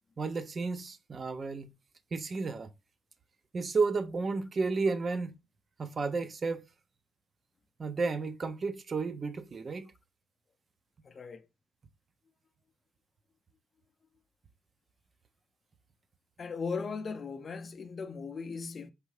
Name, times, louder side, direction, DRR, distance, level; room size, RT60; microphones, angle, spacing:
voice 1, 0.2-1.7 2.1-2.7 3.5-5.3 5.8-6.6 7.8-9.9, right 4 dB, 40° right, 0.5 m, -32 dB
voice 2, 11.0-11.5 16.4-18.9, left 5 dB, 40° left, 0.5 m, -38 dB
4.6 x 2.6 x 3.1 m
cardioid pair, 90°, 0 cm